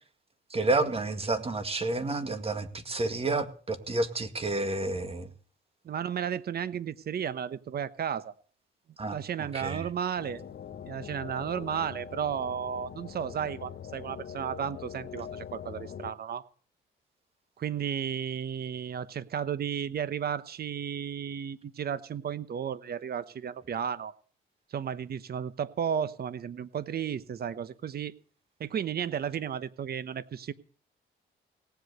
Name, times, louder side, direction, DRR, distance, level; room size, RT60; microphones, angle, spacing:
voice 1, 0.5-5.3 9.0-9.2 9.5-9.9, right 2 dB, 30° right, 9 dB, 1.9 m, -30 dB
voice 2, 5.8-8.3 9.1-10.4 10.9-16.4 17.6-24.1 24.7-28.1 28.6-30.5, right 8 dB, 50° right, 15 dB, 1.0 m, -33 dB
sound 1, 10.2-16.1, left 8 dB, 60° left, 1.4 m, -43 dB
18.0 x 8.1 x 6.7 m, 0.43 s
cardioid pair, 90°, 20 cm